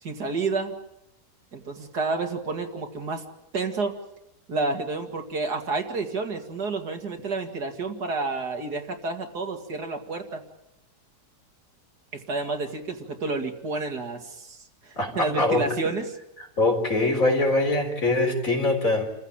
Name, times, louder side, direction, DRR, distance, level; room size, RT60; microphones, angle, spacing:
voice 1, 0.0-0.7 1.5-3.2 3.5-4.0 4.5-10.4 12.1-14.6 14.8-16.1, right 3 dB, 70° right, 4 dB, 2.8 m, -30 dB
voice 2, 15.0-15.8 16.6-19.0, left 2 dB, 50° left, 3 dB, 4.5 m, -23 dB
28.5 x 15.5 x 8.8 m, 0.85 s
omnidirectional pair, 1.8 m